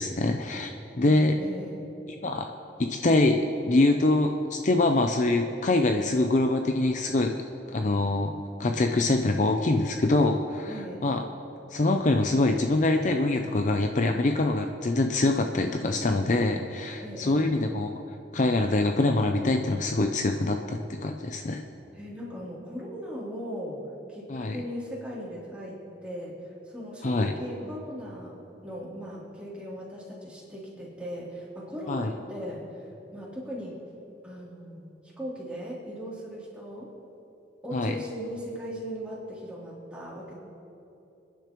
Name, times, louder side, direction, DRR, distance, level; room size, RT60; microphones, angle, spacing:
voice 1, 0.0-1.4 2.2-2.5 2.8-7.3 7.7-8.3 8.6-10.7 11.0-11.2 11.7-17.9 18.3-21.6 24.3-24.6 27.0-27.3 31.9-32.1 37.7-37.9, left 2 dB, 45° left, 5 dB, 0.5 m, -24 dB
voice 2, 1.0-1.9 10.7-11.1 17.0-17.6 21.9-23.8 24.1-33.8 34.2-36.9 37.6-40.3, equal, 5° right, -7 dB, 3.2 m, -38 dB
27.5 x 10.5 x 3.1 m, 2.9 s
head